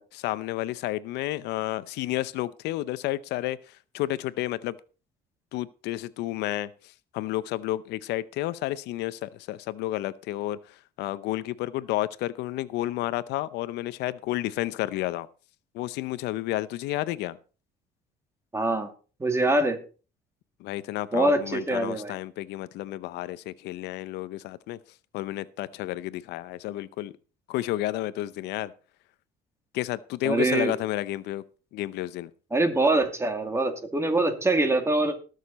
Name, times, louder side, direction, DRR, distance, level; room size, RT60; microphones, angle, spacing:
voice 1, 0.1-4.8 5.5-15.3 15.7-17.4 20.6-24.8 25.1-27.1 27.5-28.7 29.7-31.4 31.7-32.3, left 15 dB, 85° left, 0.7 m, -31 dB
voice 2, 18.5-18.9 19.2-19.8 21.1-22.1 30.2-30.7 32.5-35.2, right 2 dB, 15° right, 2.3 m, -24 dB
19.5 x 6.6 x 4.2 m
cardioid pair, 110°, 17 cm